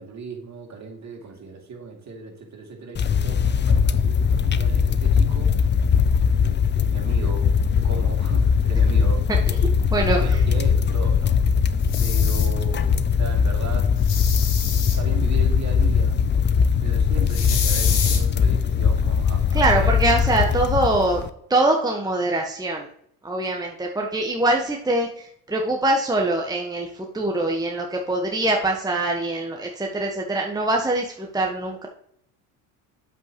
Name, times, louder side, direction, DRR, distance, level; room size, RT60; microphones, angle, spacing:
voice 1, 0.0-5.6 6.4-9.3 9.8-11.4 12.0-13.9 14.9-16.2 16.8-20.0 20.3-20.6 23.5-23.6, right 4 dB, 40° right, 1 dB, 2.9 m, -37 dB
sound 1, 2.9-21.3, left 6 dB, 25° left, 0.6 m, -20 dB
sound 2, 11.8-12.5 14.0-15.0 17.3-18.2, left 7 dB, 75° left, 2.0 m, -28 dB
voice 2, 19.5-21.2 21.5-22.9 23.2-31.9, right 2 dB, 10° right, 0 dB, 1.3 m, -23 dB
8.8 x 7.7 x 3.1 m, 0.68 s
hypercardioid pair, 65°, 44 cm